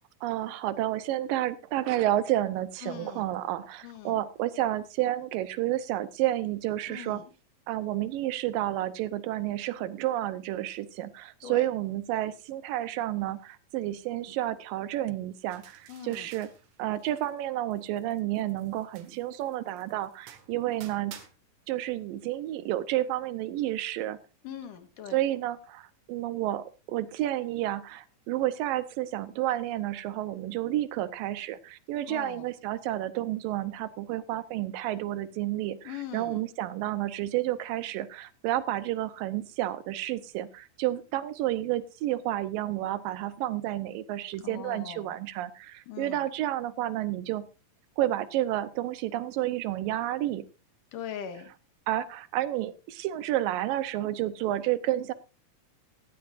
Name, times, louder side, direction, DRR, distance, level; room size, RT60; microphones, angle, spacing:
voice 1, 0.2-7.2 7.7-16.5 16.8-21.2 21.7-24.2 25.1-47.4 48.0-50.5 51.9-55.1, right 14 dB, 85° right, 14 dB, 2.5 m, -30 dB
voice 2, 2.8-3.3 3.8-4.2 6.9-7.3 11.4-11.7 15.9-16.3 24.4-25.2 32.0-32.5 35.8-36.4 44.4-45.1 45.9-46.2 50.9-51.5, left 9 dB, 70° left, 8 dB, 2.9 m, -41 dB
sound 1, 15.5-17.4 17.7-21.3, right 8 dB, 65° right, 2.8 m, -52 dB
16.5 x 14.5 x 2.6 m, 0.31 s
omnidirectional pair, 3.9 m